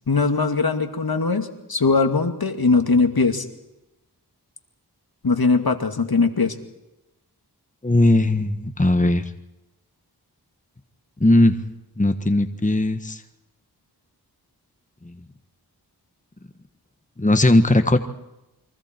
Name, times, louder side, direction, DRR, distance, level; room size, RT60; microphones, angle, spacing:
voice 1, 0.1-3.4 5.2-6.5, left 4 dB, 65° left, 7 dB, 2.3 m, -20 dB
voice 2, 7.8-9.2 11.2-11.6 12.0-13.2 15.0-15.1 17.2-18.0, left 1 dB, 20° left, 8 dB, 1.5 m, -18 dB
29.5 x 23.5 x 4.6 m, 0.95 s
wide cardioid pair, 55°, 40 cm